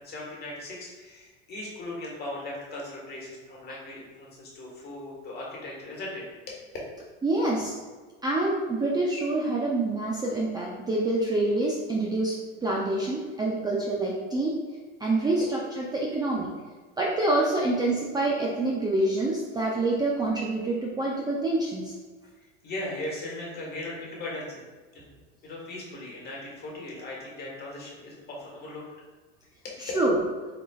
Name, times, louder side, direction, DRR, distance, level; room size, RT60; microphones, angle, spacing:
voice 1, 0.0-6.8 15.4-15.5 22.4-24.6 24.9-25.1 25.4-28.8 29.6-29.8, left 2 dB, 35° left, -4 dB, 1.5 m, -38 dB
voice 2, 7.2-7.7 8.2-12.4 12.6-14.6 15.0-16.5 17.0-21.9 29.8-30.2, right 2 dB, 15° right, -3 dB, 0.4 m, -26 dB
4.2 x 4.0 x 2.3 m, 1.4 s
supercardioid pair, 125°, 30 cm